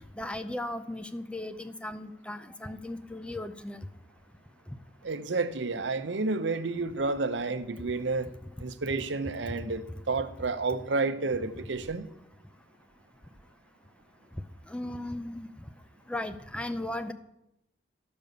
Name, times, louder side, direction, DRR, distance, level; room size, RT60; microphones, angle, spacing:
voice 1, 0.2-3.8 14.7-15.5 16.1-17.1, left 1 dB, 5° left, 0.5 m, -36 dB
voice 2, 5.0-8.3 8.6-12.0, right 3 dB, 90° right, 0.8 m, -30 dB
14.0 x 5.3 x 6.7 m
head